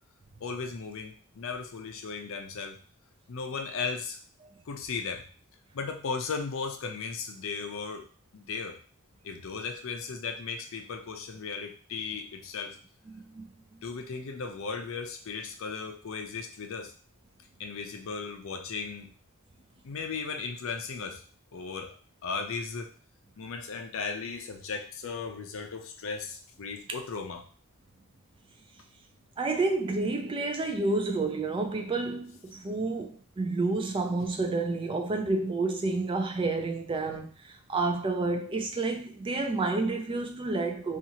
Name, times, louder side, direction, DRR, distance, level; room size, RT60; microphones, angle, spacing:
voice 1, 0.4-2.8 3.3-4.2 4.7-5.3 5.7-8.1 8.3-8.8 9.2-12.8 13.8-16.9 17.6-19.1 19.8-21.2 21.5-22.0 22.2-22.9 23.4-27.4, left 5 dB, 60° left, 0.5 m, -36 dB
voice 2, 29.4-41.0, right 3 dB, 25° right, 0.3 m, -29 dB
2.8 x 2.4 x 2.8 m
head